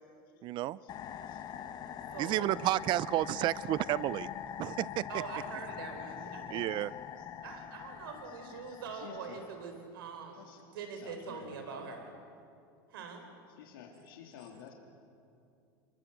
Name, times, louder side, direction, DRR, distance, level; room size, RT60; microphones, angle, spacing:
voice 1, 0.4-0.8 2.2-4.3 4.6-5.1 6.5-6.9, right 15 dB, 40° right, 20 dB, 0.6 m, -31 dB
sound 1, 0.9-9.7, left 9 dB, 35° left, 1.5 m, -44 dB
voice 2, 2.1-2.6 5.1-6.7 7.4-12.1 12.9-13.3, right 5 dB, 90° right, 6 dB, 4.3 m, -43 dB
voice 3, 8.9-9.4 10.4-10.7 10.9-12.0 13.6-14.7, left 8 dB, 85° left, 1 dB, 3.4 m, -51 dB
26.5 x 22.0 x 8.0 m, 2.5 s
supercardioid pair, 130°, 12 cm